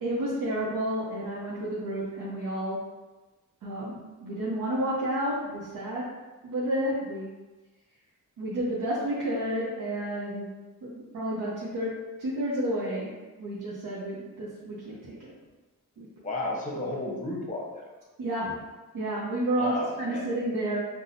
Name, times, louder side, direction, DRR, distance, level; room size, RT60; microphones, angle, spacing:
voice 1, 0.0-2.8 3.6-6.0 6.4-7.3 8.4-10.5 10.8-13.1 13.4-15.3 16.0-16.1 18.2-18.6 18.9-20.8, right 1 dB, 65° right, -6 dB, 0.9 m, -31 dB
voice 2, 16.2-17.9 19.6-20.3, left 2 dB, 20° left, -2 dB, 1.0 m, -33 dB
3.9 x 2.3 x 2.7 m, 1.2 s
supercardioid pair, 50°, 37 cm